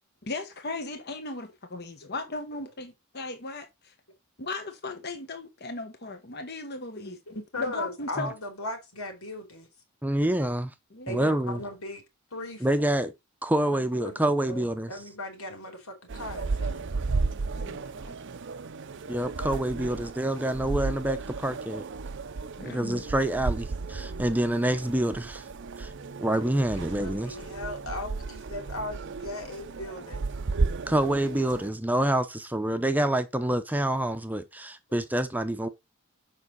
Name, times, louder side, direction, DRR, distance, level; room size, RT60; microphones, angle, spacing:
voice 1, 0.3-3.9 4.4-8.3 10.9-11.4 17.5-18.1 22.6-23.0, left 3 dB, 50° left, 1.3 m, -37 dB
voice 2, 7.0-9.7 11.1-12.0 12.3-12.7 13.7-16.9 26.7-30.3, left 1 dB, 90° left, 3.3 m, -38 dB
voice 3, 10.0-10.7 11.1-11.6 12.6-13.1 13.4-14.9 19.1-21.9 22.6-25.4 25.8-25.9 26.2-27.4 30.9-35.7, right 1 dB, 10° right, 0.7 m, -27 dB
sound 1, 16.1-31.7, right 4 dB, 60° right, 0.6 m, -34 dB
7.2 x 5.6 x 4.1 m
head